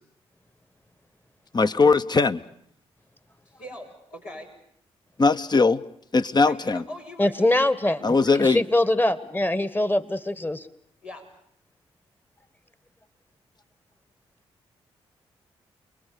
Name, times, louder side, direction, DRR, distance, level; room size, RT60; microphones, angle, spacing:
voice 1, 1.5-2.4 5.2-5.8 6.1-6.8 8.0-8.6, left 4 dB, 35° left, 1.0 m, -20 dB
voice 2, 3.5-4.5 6.4-9.1 11.0-11.3, equal, 85° left, 6.3 m, -42 dB
voice 3, 7.2-8.0 8.4-10.6, left 1 dB, 15° left, 1.5 m, -23 dB
29.0 x 21.5 x 7.0 m
hypercardioid pair, 45°, 13 cm